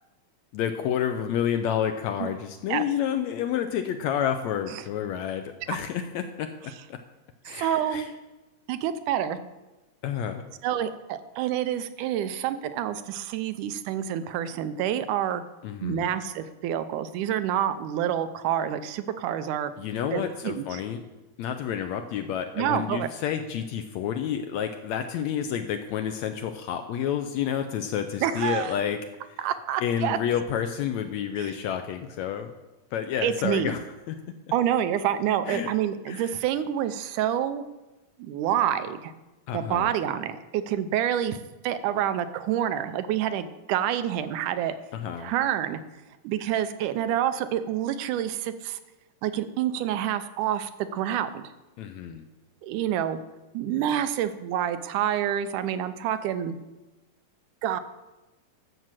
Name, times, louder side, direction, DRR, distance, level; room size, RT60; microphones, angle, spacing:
voice 1, 0.5-6.5 6.9-7.0 7.5-8.1 10.0-10.4 15.6-16.1 19.8-21.0 21.4-29.0 29.8-32.5 32.9-34.2 35.5-35.7 36.1-36.3 39.5-39.9 44.9-45.3 51.8-52.2, left 9 dB, 75° left, 7 dB, 1.7 m, -29 dB
voice 2, 7.5-8.1 8.7-9.5 10.6-15.4 15.8-19.7 20.1-20.8 22.6-23.1 28.2-28.8 29.4-30.2 31.4-31.5 33.2-33.8 34.5-37.6 38.2-39.1 39.5-41.4 41.6-44.7 45.2-45.8 46.2-48.8 49.2-51.4 52.6-53.2 53.5-56.6 57.6-57.8, right 10 dB, 80° right, 11 dB, 2.1 m, -27 dB
12.0 x 6.1 x 7.5 m, 1.1 s
omnidirectional pair, 3.7 m